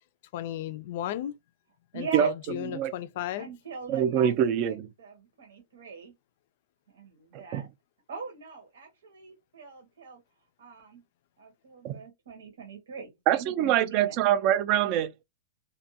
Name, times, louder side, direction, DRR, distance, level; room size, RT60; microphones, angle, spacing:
voice 1, 0.3-1.4 1.9-3.5, left 12 dB, 50° left, 0.3 m, -34 dB
voice 2, 1.9-2.3 3.4-6.1 6.9-7.7 8.1-10.2 10.6-11.0 11.4-14.2, right 5 dB, 90° right, 1.0 m, -42 dB
voice 3, 3.9-4.9 7.3-7.6 11.8-12.0 13.3-15.2, right 10 dB, 35° right, 0.4 m, -24 dB
2.5 x 2.2 x 2.7 m
supercardioid pair, 155°, 0 cm